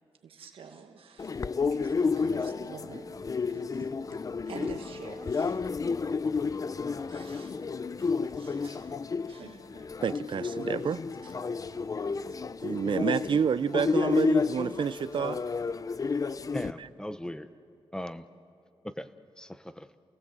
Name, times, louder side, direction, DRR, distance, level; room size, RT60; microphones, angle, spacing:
voice 1, 0.2-3.1 3.5-4.2 4.5-5.6 6.9-7.6 8.0-9.0 9.3-9.9 10.6-10.7 12.1-12.4, right 6 dB, 80° right, 4 dB, 1.4 m, -48 dB
sound 1, 1.2-16.7, left 4 dB, 40° left, 0.6 m, -31 dB
voice 2, 10.0-11.3 12.6-15.4, right 7 dB, 60° right, 16 dB, 0.6 m, -29 dB
voice 3, 16.5-17.5 17.9-18.2 18.8-19.1 19.4-19.9, left 1 dB, 10° left, 11 dB, 0.8 m, -38 dB
29.0 x 18.5 x 7.6 m, 2.7 s
cardioid pair, 85°, 9 cm